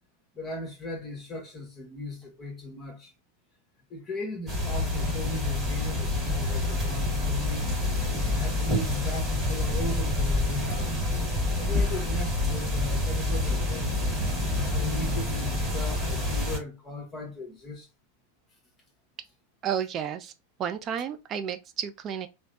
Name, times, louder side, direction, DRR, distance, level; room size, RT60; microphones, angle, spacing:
voice 1, 0.3-3.1 3.9-7.6 8.3-10.9 11.6-14.0 14.7-17.9, left 2 dB, 20° left, 1.2 m, -37 dB
sound 1, 4.5-16.6, left 2 dB, 10° right, 1.6 m, -27 dB
voice 2, 19.6-20.3 20.6-22.3, right 8 dB, 30° right, 0.4 m, -31 dB
3.1 x 2.0 x 2.6 m
figure-of-eight pair, 90°, 0 cm